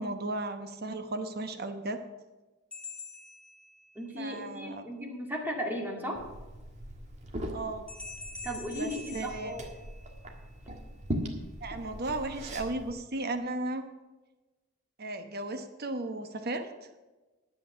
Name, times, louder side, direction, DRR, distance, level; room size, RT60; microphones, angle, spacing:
voice 1, 0.0-2.0 4.2-4.8 7.5-7.8 8.7-9.5 11.6-13.8 15.0-16.7, right 2 dB, 50° right, 8 dB, 1.0 m, -35 dB
sound 1, 2.7-4.2 7.9-10.4, left 3 dB, 5° left, 1.7 m, -46 dB
voice 2, 4.0-6.2 8.4-9.7, equal, 10° right, -1 dB, 2.3 m, -36 dB
Liquid, 6.1-12.9, equal, 35° right, 1.7 m, -40 dB
11.0 x 8.4 x 6.2 m, 1.2 s
head